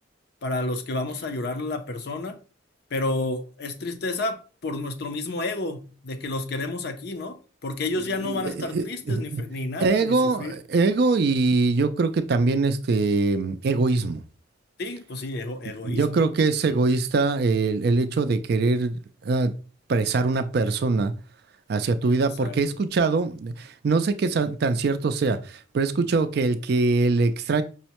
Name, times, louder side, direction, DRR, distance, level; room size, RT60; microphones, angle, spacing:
voice 1, 0.4-2.4 2.9-10.5 14.8-16.3 22.4-22.6, left 2 dB, 55° left, 0.5 m, -30 dB
voice 2, 8.2-9.4 9.8-14.2 15.8-18.9 19.2-19.5 19.9-21.1 21.7-27.6, right 3 dB, 55° right, 0.3 m, -23 dB
5.4 x 2.1 x 2.9 m
head